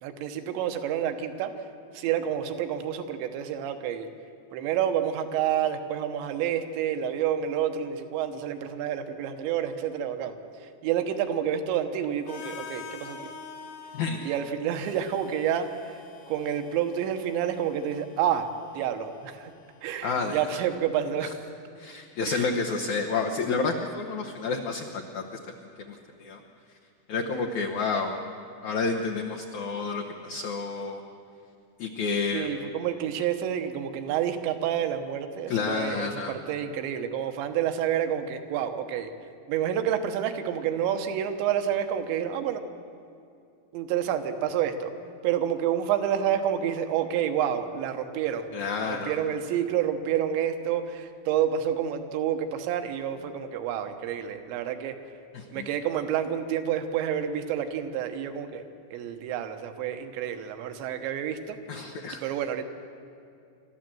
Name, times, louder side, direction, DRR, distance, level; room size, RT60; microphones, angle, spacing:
voice 1, 0.0-1.5 1.9-4.1 4.5-10.4 10.6-13.3 14.2-16.0 16.3-18.5 18.7-19.5 19.8-21.5 22.3-22.5 32.3-39.1 39.5-42.6 43.7-44.9 45.2-55.0 55.5-61.6 62.2-62.6, right 9 dB, 80° right, 8 dB, 3.3 m, -29 dB
Harmonica, 12.2-20.1, left 6 dB, 55° left, 2.0 m, -46 dB
voice 2, 20.0-20.4 21.8-25.3 25.8-25.9 26.2-26.4 27.1-28.2 28.6-31.0 31.8-32.5 35.5-36.3 48.5-49.2 55.3-55.7 61.7-62.2, left 4 dB, 85° left, 1 dB, 1.6 m, -29 dB
28.0 x 13.0 x 7.7 m, 2.5 s
omnidirectional pair, 5.2 m